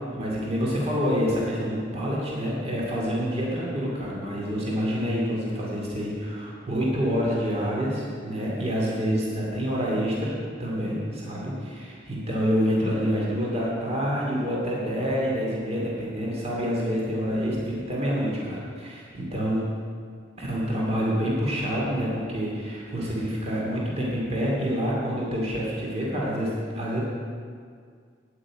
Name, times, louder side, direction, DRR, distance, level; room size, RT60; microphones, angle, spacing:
voice 1, 0.0-19.7 20.4-27.0, equal, 35° right, -4 dB, 2.4 m, -27 dB
9.3 x 8.6 x 8.5 m, 2.1 s
head